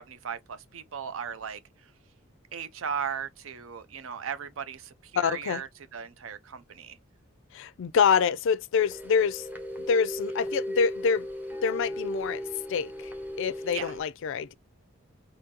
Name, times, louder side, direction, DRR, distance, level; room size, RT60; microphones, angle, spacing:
voice 1, 0.0-1.6 2.5-7.0 13.7-13.9, right 7 dB, 75° right, 0.5 m, -37 dB
voice 2, 5.2-5.6 7.5-9.5 9.9-11.3 11.6-12.4 12.7-13.1 13.4-14.5, left 6 dB, 65° left, 0.4 m, -26 dB
sound 1, 8.8-14.0, equal, 10° right, 0.8 m, -36 dB
3.7 x 2.7 x 2.7 m
head